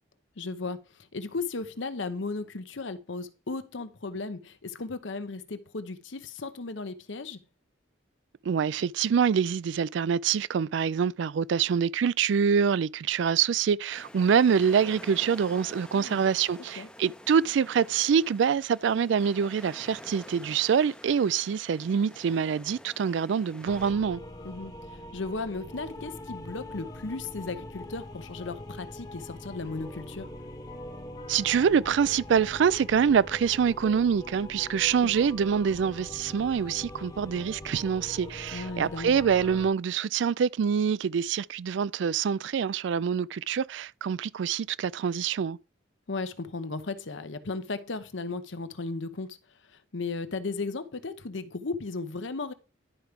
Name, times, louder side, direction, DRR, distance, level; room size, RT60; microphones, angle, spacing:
voice 1, 0.4-0.8 1.1-7.4 15.9-16.2 16.8-16.9 24.4-24.7 25.1-30.3 35.0-35.3 38.5-39.2 46.1-49.4 49.9-52.5, left 3 dB, 80° left, 0.9 m, -35 dB
voice 2, 8.5-24.2 31.3-45.6, right 7 dB, 75° right, 0.3 m, -25 dB
sound 1, 13.9-23.9, left 1 dB, 5° left, 0.5 m, -48 dB
sound 2, 23.7-39.7, left 1 dB, 20° left, 1.0 m, -42 dB
11.0 x 4.6 x 5.1 m
head